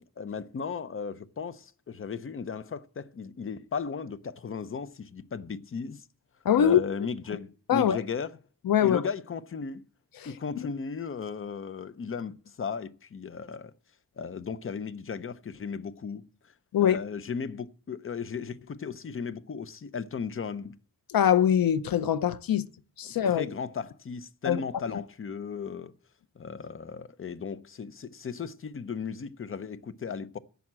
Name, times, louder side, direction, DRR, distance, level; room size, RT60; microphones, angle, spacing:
voice 1, 0.0-6.0 6.6-8.3 8.8-9.8 10.2-13.7 14.2-20.8 23.0-25.9 26.4-30.4, left 6 dB, 40° left, 0.6 m, -36 dB
voice 2, 6.4-6.8 7.7-8.0 8.7-9.0 10.2-10.3 10.6-10.7 16.7-17.0 21.1-22.6 23.0-23.5 24.4-24.6, left 9 dB, 85° left, 0.7 m, -23 dB
11.0 x 7.0 x 7.4 m
wide cardioid pair, 130°, 34 cm